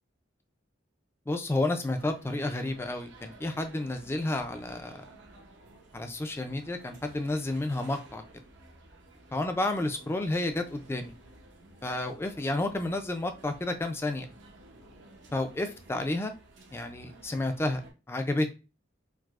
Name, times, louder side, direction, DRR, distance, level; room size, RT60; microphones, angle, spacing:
voice 1, 1.3-5.0 5.9-8.2 9.3-11.1 11.8-14.3 15.3-16.3 16.7-17.8 18.1-18.5, left 2 dB, 15° left, 7 dB, 0.3 m, -31 dB
sound 1, 2.0-17.9, right 2 dB, 80° right, 0.6 m, -53 dB
4.5 x 2.0 x 2.3 m, 0.31 s
head